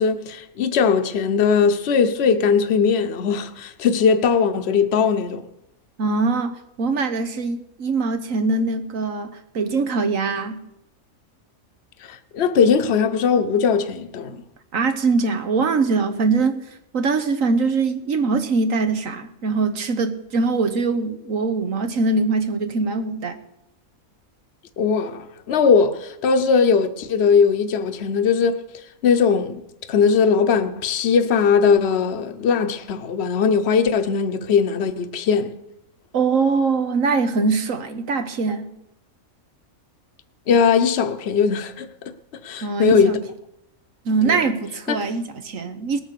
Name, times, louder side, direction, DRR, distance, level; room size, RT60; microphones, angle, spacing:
voice 1, 0.0-5.4 12.1-14.4 24.8-28.6 29.0-29.6 29.9-35.5 40.5-41.9 42.4-43.2 44.2-44.4 44.9-45.0, left 6 dB, 50° left, 1.1 m, -19 dB
voice 2, 6.0-10.6 14.7-16.6 16.9-23.4 36.1-38.7 42.6-43.2 44.0-46.0, right 4 dB, 65° right, 1.5 m, -22 dB
19.0 x 8.7 x 6.7 m
omnidirectional pair, 1.5 m